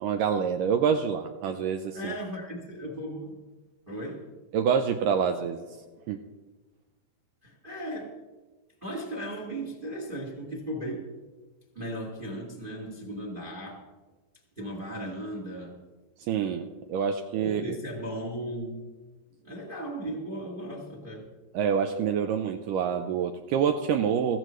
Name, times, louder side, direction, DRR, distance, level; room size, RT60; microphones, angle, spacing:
voice 1, 0.0-2.1 4.5-5.7 6.1-6.2 16.3-17.7 21.5-24.4, right 7 dB, 85° right, 5 dB, 1.9 m, -27 dB
voice 2, 1.9-3.4 3.9-4.2 7.4-8.1 8.8-11.0 11.7-13.8 14.6-15.7 17.4-18.8 19.4-21.3, right 1 dB, 40° right, -1 dB, 0.7 m, -36 dB
16.5 x 15.0 x 3.1 m, 1.2 s
omnidirectional pair, 4.5 m